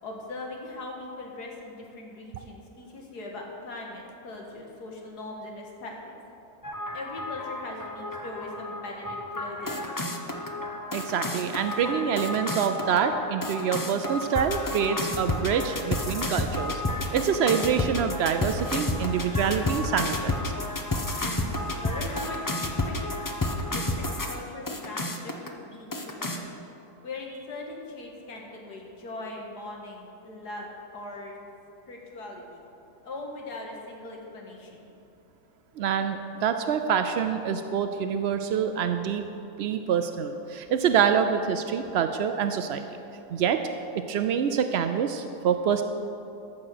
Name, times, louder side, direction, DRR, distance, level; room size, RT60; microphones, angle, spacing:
voice 1, 0.0-6.1 6.9-9.8 21.2-23.2 23.7-26.5 27.0-30.7 30.9-31.4 31.9-32.6 33.0-34.9, left 2 dB, 80° left, 0 dB, 2.1 m, -40 dB
sound 1, 6.6-24.3 24.7-25.5 25.9-26.4, left 1 dB, 30° left, 0.4 m, -31 dB
voice 2, 10.9-16.8 17.1-20.5 35.8-39.2 39.6-42.8 43.3-43.6 43.9-45.8, right 7 dB, 85° right, 8 dB, 0.5 m, -26 dB
14.5 x 6.2 x 6.5 m, 2.8 s
omnidirectional pair, 1.7 m